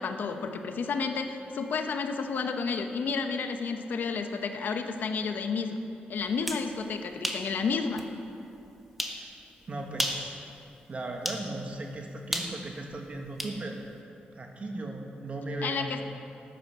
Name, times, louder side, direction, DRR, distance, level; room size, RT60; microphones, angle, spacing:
voice 1, 0.0-5.8 6.1-8.0 15.6-16.0, left 5 dB, 70° left, 6 dB, 1.0 m, -31 dB
sound 1, 6.2-6.7 7.2-7.5 8.0-8.1 9.0-9.2 9.9-10.3 11.2-11.5 12.3-13.6, equal, 5° right, 1.4 m, -32 dB
voice 2, 9.7-10.4 10.8-13.8 14.3-16.0, right 2 dB, 40° right, 2 dB, 1.7 m, -37 dB
14.0 x 9.5 x 6.3 m, 2.7 s
cardioid pair, 90°, 3 cm